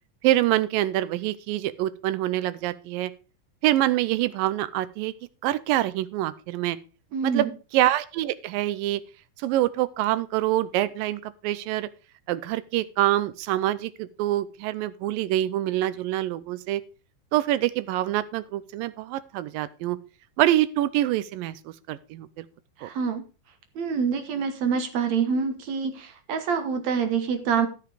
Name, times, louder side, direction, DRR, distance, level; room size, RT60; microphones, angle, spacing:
voice 1, 0.2-3.1 3.6-5.1 5.4-6.8 7.2-9.0 9.4-11.9 12.3-16.8 17.3-20.0 20.4-22.5 22.8-22.9, right 14 dB, 85° right, 16 dB, 2.4 m, -25 dB
voice 2, 7.1-7.5 22.8-23.2 23.8-27.7, right 6 dB, 60° right, 9 dB, 2.1 m, -26 dB
12.5 x 7.2 x 4.9 m, 0.35 s
omnidirectional pair, 3.9 m